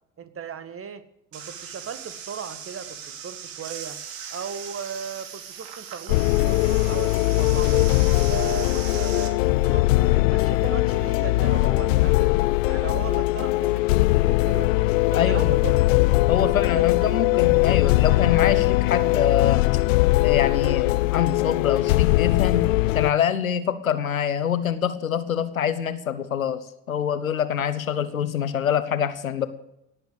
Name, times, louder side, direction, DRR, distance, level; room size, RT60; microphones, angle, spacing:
voice 1, 0.2-1.0 1.3-4.0 4.3-7.9 8.2-12.4 12.7-14.7 15.1-15.8 16.4-17.1, right 6 dB, 35° right, 12 dB, 1.8 m, -36 dB
sound 1, 1.3-9.3, right 8 dB, 55° right, 2.7 m, -39 dB
sound 2, 6.1-23.1, left 20 dB, 70° left, 0.6 m, -20 dB
voice 2, 15.1-15.5 16.3-19.7 20.2-29.5, left 8 dB, 90° left, 13 dB, 1.0 m, -25 dB
18.0 x 8.1 x 8.1 m, 0.80 s
figure-of-eight pair, 60°, 40 cm